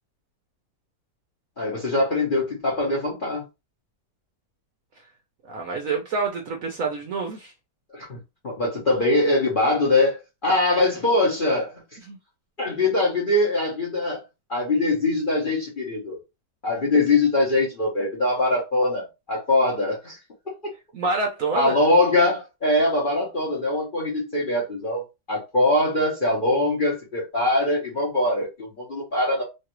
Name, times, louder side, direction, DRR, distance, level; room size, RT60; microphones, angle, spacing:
voice 1, 1.6-3.4 7.9-8.2 8.4-11.8 12.6-14.2 14.5-16.2 16.6-20.2 20.5-20.6 21.5-29.4, left 2 dB, 40° left, 0.8 m, -22 dB
voice 2, 5.5-7.5 12.1-12.2 20.9-21.8, right 4 dB, 60° right, 0.9 m, -27 dB
3.2 x 2.4 x 2.9 m
omnidirectional pair, 1.9 m